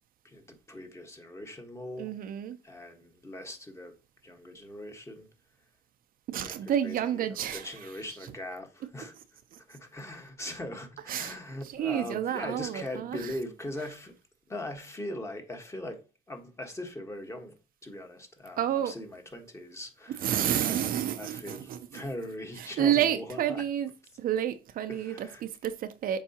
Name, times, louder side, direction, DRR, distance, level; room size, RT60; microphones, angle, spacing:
voice 1, 0.2-2.1 2.6-3.9 4.2-5.3 6.4-9.1 9.7-14.1 14.5-17.5 17.8-20.3 20.6-23.6 24.9-25.4, left 1 dB, 15° left, 1.4 m, -41 dB
voice 2, 2.0-2.6 6.3-7.7 11.1-11.4 11.7-13.3 18.6-18.9 20.2-22.0 22.6-23.9 24.2-26.2, right 10 dB, 60° right, 0.7 m, -30 dB
7.2 x 4.7 x 2.9 m
cardioid pair, 110°, 17 cm